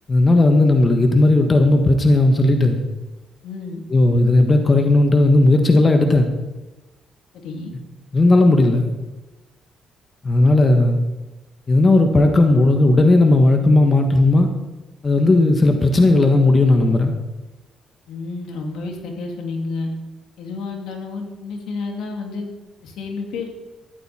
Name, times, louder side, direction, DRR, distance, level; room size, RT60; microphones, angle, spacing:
voice 1, 0.1-2.8 3.9-6.3 8.1-8.9 10.2-11.0 11.7-14.5 15.0-17.1, left 2 dB, 30° left, 5 dB, 1.5 m, -15 dB
voice 2, 3.4-3.8 7.3-7.7 18.1-19.9 20.4-22.4 22.8-23.5, left 3 dB, 80° left, 1 dB, 2.6 m, -30 dB
14.0 x 10.5 x 4.4 m, 1.1 s
cardioid pair, 90°, 0 cm